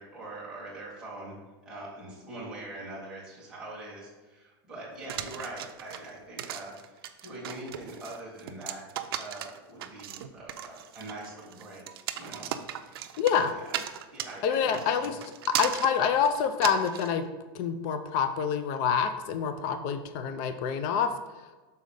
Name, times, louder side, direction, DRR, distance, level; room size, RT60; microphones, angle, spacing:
voice 1, 0.0-1.4 1.7-8.8 9.2-11.8 12.1-12.5 13.3-13.7 14.1-15.1, right 2 dB, 5° right, -6 dB, 1.8 m, -43 dB
sound 1, 5.1-17.1, right 11 dB, 75° right, 0.5 m, -37 dB
voice 2, 13.2-13.5 14.4-15.2 15.5-17.2 17.5-21.1, left 7 dB, 35° left, 9 dB, 0.4 m, -27 dB
6.4 x 4.0 x 5.2 m, 1.2 s
supercardioid pair, 175°, 12 cm